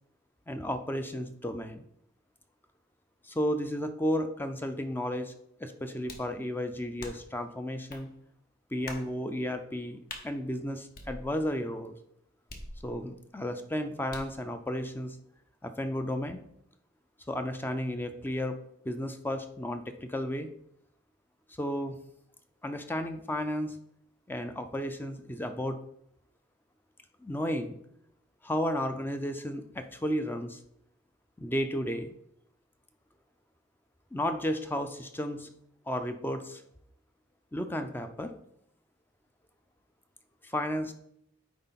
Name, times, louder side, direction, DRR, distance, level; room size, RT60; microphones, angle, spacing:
voice 1, 0.5-1.8 3.2-5.3 5.6-8.1 8.7-11.9 12.8-15.2 15.6-16.4 17.3-18.6 18.8-20.5 21.6-22.0 22.6-23.8 24.3-25.8 27.2-27.8 28.4-30.6 31.4-32.1 34.1-35.5 35.9-36.6 37.5-38.3 40.4-40.9, equal, 10° left, 8 dB, 0.5 m, -33 dB
sound 1, 6.1-6.4 7.0-7.4 7.9-8.1 8.9-9.1 10.1-10.3 10.9-11.6 12.5-13.2 14.1-14.4, left 2 dB, 45° left, 1.1 m, -44 dB
9.6 x 4.0 x 4.0 m, 0.75 s
head